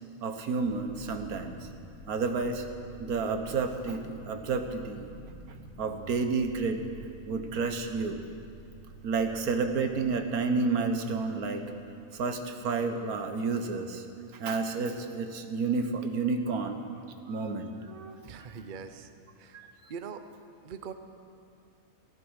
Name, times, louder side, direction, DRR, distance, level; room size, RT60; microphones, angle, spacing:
voice 1, 0.2-1.7 2.1-2.6 3.0-5.1 5.8-6.8 7.3-8.2 9.0-11.6 12.1-14.1 14.3-16.8 17.3-18.2 19.5-19.7, right 4 dB, 80° right, 6 dB, 1.5 m, -30 dB
sound 1, 0.6-14.5, equal, 85° left, 4.1 m, -51 dB
voice 2, 18.2-19.1 19.4-19.6 19.9-20.2 20.6-20.9, right 6 dB, 45° right, 9 dB, 0.7 m, -41 dB
15.0 x 14.0 x 6.3 m, 2.5 s
omnidirectional pair, 1.5 m